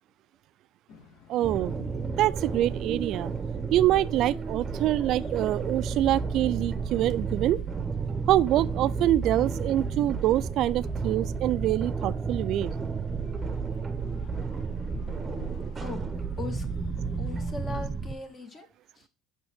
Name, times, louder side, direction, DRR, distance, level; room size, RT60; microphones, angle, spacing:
sound 1, 0.9-18.2, left 7 dB, 60° left, 0.9 m, -50 dB
voice 1, 1.3-1.7 2.2-3.3 3.7-7.6 8.3-12.7, right 13 dB, 60° right, 0.3 m, -25 dB
sound 2, 1.4-18.1, right 5 dB, 25° right, 0.7 m, -32 dB
voice 2, 17.2-18.7 19.0-19.1, left 3 dB, 35° left, 1.2 m, -38 dB
6.1 x 5.8 x 3.4 m
supercardioid pair, 115°, 0 cm